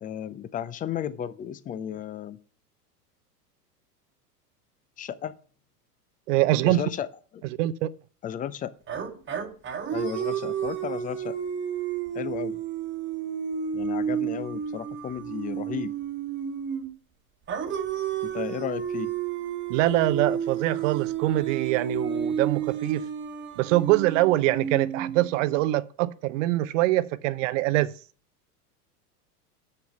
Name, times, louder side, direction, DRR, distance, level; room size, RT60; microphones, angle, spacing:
voice 1, 0.0-2.4 5.0-5.4 6.6-7.1 7.3-7.4 8.2-8.7 9.9-11.4 12.1-12.6 13.7-15.9 18.2-19.1, left 9 dB, 20° left, 0.6 m, -34 dB
voice 2, 6.3-6.8 7.6-7.9 19.7-23.1 23.6-27.9, right 16 dB, 50° right, 0.7 m, -24 dB
sound 1, 8.9-16.9 17.5-25.6, right 8 dB, 25° right, 1.4 m, -31 dB
7.1 x 6.6 x 7.0 m
hypercardioid pair, 100°, 47 cm